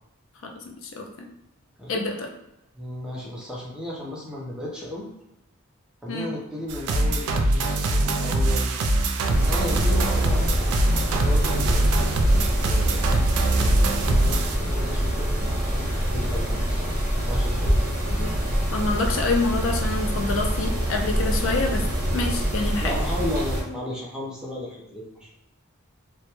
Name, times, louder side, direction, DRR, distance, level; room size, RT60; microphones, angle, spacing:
voice 1, 0.4-1.3 1.9-2.3 6.1-6.3 18.2-18.3 18.7-21.8 22.1-22.9, left 3 dB, 65° left, 2 dB, 0.4 m, -27 dB
voice 2, 2.7-5.1 6.0-8.8 9.4-11.9 12.6-13.1 13.5-17.0 17.3-17.8 22.8-25.3, left 1 dB, 5° right, -5 dB, 0.5 m, -34 dB
sound 1, 6.7-14.6, right 2 dB, 85° right, 0.3 m, -23 dB
Mechanisms, 9.3-23.6, equal, 45° right, 0.8 m, -25 dB
2.2 x 2.1 x 2.9 m, 0.90 s
head